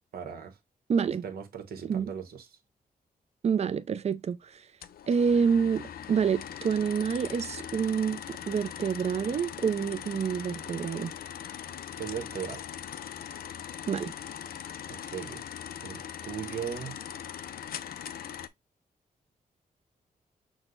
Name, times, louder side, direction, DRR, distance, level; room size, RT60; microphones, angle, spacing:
voice 1, 0.1-0.6 1.2-2.6 12.0-12.6 14.9-15.4 15.8-17.0, right 8 dB, 85° right, 1.0 m, -38 dB
voice 2, 0.9-1.2 1.8-2.1 3.4-4.5 5.1-11.1 13.9-14.1, right 6 dB, 45° right, 0.4 m, -28 dB
sound 1, 4.8-18.5, left 9 dB, 75° left, 0.5 m, -41 dB
6.3 x 2.1 x 3.8 m
wide cardioid pair, 125°, 15 cm